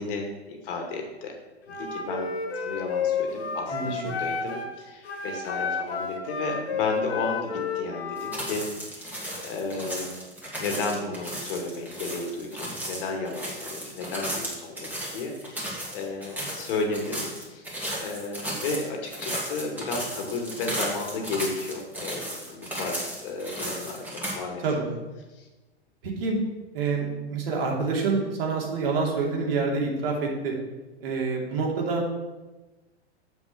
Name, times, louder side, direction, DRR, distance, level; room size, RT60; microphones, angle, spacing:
voice 1, 0.0-1.4 1.7-10.2 10.6-17.7 18.0-24.6 25.3-25.5 31.9-32.0, left 3 dB, 55° left, 2 dB, 2.3 m, -33 dB
Wind instrument woodwind instrument, 1.6-4.7 5.0-8.4, left 5 dB, 75° left, 1.7 m, -31 dB
voice 2, 3.7-4.2 24.6-24.9 26.0-26.4 26.7-30.5 31.0-32.0, right 4 dB, 60° right, -1 dB, 2.8 m, -27 dB
sound 1, 8.2-24.3, right 1 dB, 5° right, 2.7 m, -35 dB
7.4 x 6.1 x 6.7 m, 1.1 s
hypercardioid pair, 105°, 33 cm